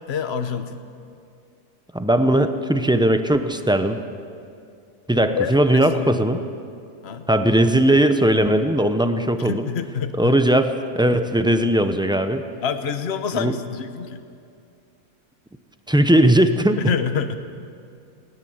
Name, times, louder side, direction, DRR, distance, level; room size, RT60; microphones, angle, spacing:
voice 1, 0.1-0.8 5.3-6.2 7.0-7.2 9.4-10.4 12.6-14.2 16.8-17.4, left 6 dB, 45° left, 9 dB, 1.2 m, -27 dB
voice 2, 1.9-4.0 5.1-6.4 7.3-9.7 10.2-12.4 13.4-13.5 15.9-16.8, right 1 dB, 5° right, 8 dB, 0.5 m, -18 dB
20.0 x 18.5 x 7.9 m, 2.4 s
omnidirectional pair, 1.6 m